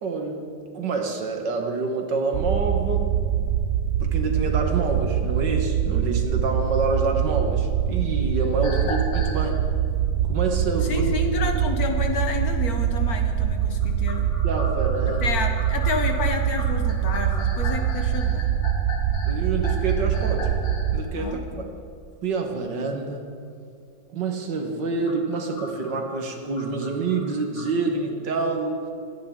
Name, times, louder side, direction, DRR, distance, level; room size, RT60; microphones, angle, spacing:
voice 1, 0.0-3.1 4.0-9.6 10.3-11.1 14.4-15.3 19.3-20.5 20.9-21.7 22.2-23.3 24.1-28.9, right 3 dB, 70° right, 3 dB, 2.0 m, -27 dB
sound 1, 2.3-21.0, right 9 dB, 85° right, 0.6 m, -24 dB
sound 2, 8.4-9.4 13.8-20.9 24.8-27.7, left 3 dB, 80° left, 2.5 m, -38 dB
voice 2, 10.8-14.3 15.2-18.5 21.1-21.7, left 4 dB, 55° left, 4 dB, 1.4 m, -30 dB
24.0 x 10.0 x 3.7 m, 2.3 s
omnidirectional pair, 2.0 m